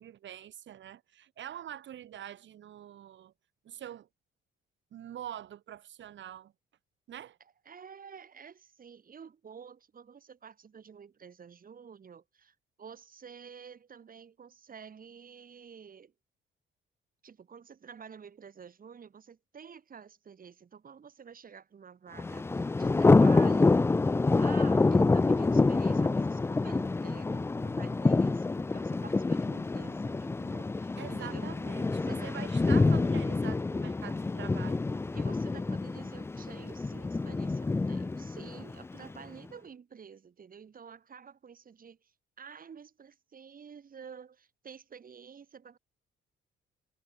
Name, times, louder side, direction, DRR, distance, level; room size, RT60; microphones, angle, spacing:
voice 1, 0.0-3.3 3.6-4.1 4.9-6.5 7.1-7.4 31.0-34.8, right 11 dB, 70° right, 4.2 m, -45 dB
voice 2, 7.7-16.1 17.2-23.8 24.3-31.5 32.0-32.5 35.1-45.8, right 6 dB, 45° right, 4.0 m, -50 dB
Thunder, 22.2-39.2, left 3 dB, 10° left, 0.4 m, -27 dB
cardioid pair, 90°, 20 cm